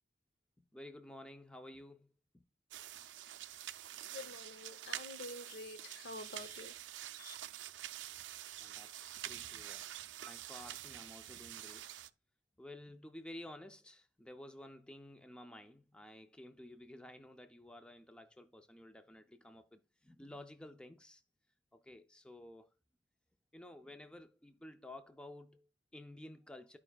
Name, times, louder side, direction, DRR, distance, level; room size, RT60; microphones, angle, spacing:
voice 1, 0.6-2.4 8.6-9.9 10.2-11.9 12.6-21.2 21.7-22.7 23.5-26.8, left 1 dB, 5° left, 0.4 m, -53 dB
sound 1, 2.7-12.1, right 12 dB, 80° right, 0.4 m, -47 dB
voice 2, 3.6-6.8 7.1-7.3, left 2 dB, 65° left, 0.8 m, -49 dB
13.5 x 4.8 x 2.2 m
head